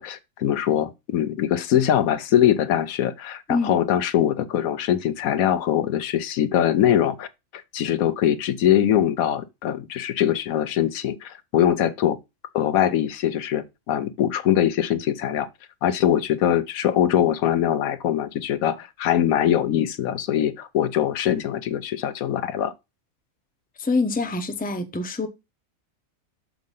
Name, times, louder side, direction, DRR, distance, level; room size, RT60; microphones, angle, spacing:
voice 1, 0.0-7.3 7.7-12.2 12.5-15.5 15.8-22.7, left 10 dB, 85° left, 1.1 m, -22 dB
voice 2, 23.8-25.3, left 3 dB, 10° left, 0.6 m, -25 dB
6.3 x 3.8 x 5.4 m
omnidirectional pair, 1.4 m